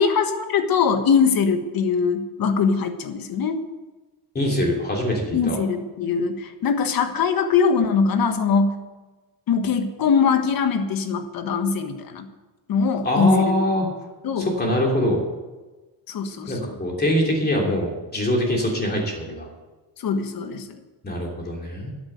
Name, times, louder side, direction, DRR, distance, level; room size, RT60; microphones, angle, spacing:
voice 1, 0.0-3.6 5.3-8.7 9.5-12.3 12.7-13.5 13.8-13.9 14.2-14.5 16.1-16.7 20.0-20.8, left 5 dB, 55° left, 8 dB, 1.5 m, -22 dB
voice 2, 4.3-5.6 13.0-13.9 14.4-15.2 16.5-19.5 21.0-21.9, left 1 dB, 20° left, -1 dB, 3.1 m, -23 dB
12.0 x 8.4 x 8.0 m, 1.2 s
cardioid pair, 145°, 43 cm